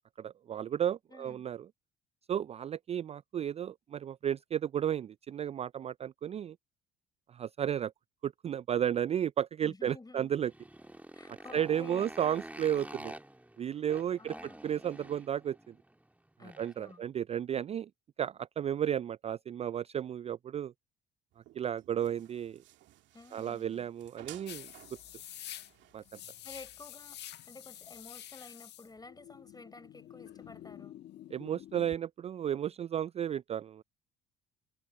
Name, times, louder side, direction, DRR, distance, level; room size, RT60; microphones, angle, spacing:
voice 1, 0.2-1.7 2.3-6.6 7.3-7.9 8.2-10.5 11.3-13.1 13.6-14.3 14.6-15.8 16.4-17.9 18.2-20.7 21.6-22.6 23.3-24.7 25.9-26.2 31.3-33.8, right 9 dB, 30° right, 0.4 m, -33 dB
voice 2, 1.1-1.4 9.6-10.3 11.1-12.1 14.2-14.6 16.4-17.0 23.1-23.9 26.4-31.0, left 3 dB, 20° left, 4.8 m, -52 dB
Motorcycle, 10.3-16.9, right 1 dB, 5° right, 2.6 m, -49 dB
sound 1, 21.3-28.5, right 15 dB, 65° right, 2.3 m, -58 dB
sound 2, 24.5-32.0, left 12 dB, 55° left, 1.4 m, -48 dB
hypercardioid pair, 60°, 21 cm